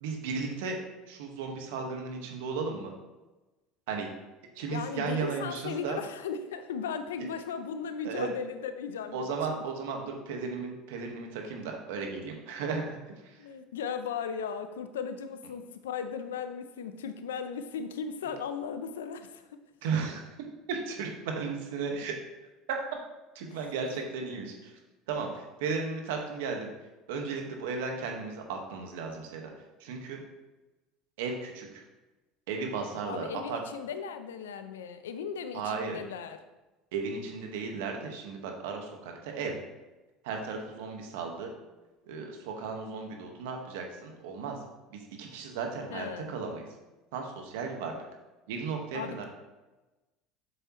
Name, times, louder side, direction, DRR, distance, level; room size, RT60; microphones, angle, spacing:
voice 1, 0.0-0.8 1.1-2.9 3.9-4.1 4.5-6.0 7.2-7.3 8.0-8.3 9.1-13.4 19.8-20.2 20.7-22.1 22.7-22.8 23.3-24.8 25.1-26.7 27.1-30.2 31.2-31.8 32.5-33.6 35.5-36.0 36.9-39.6 40.2-41.5 42.1-44.6 44.9-46.6 47.1-48.0 48.5-49.2, right 5 dB, 80° right, 2 dB, 1.6 m, -35 dB
voice 2, 4.7-9.6 13.4-19.6 33.1-36.4 45.9-46.3 48.9-49.2, left 6 dB, 90° left, 10 dB, 0.6 m, -37 dB
7.8 x 7.0 x 3.1 m, 1.1 s
hypercardioid pair, 85°, 0 cm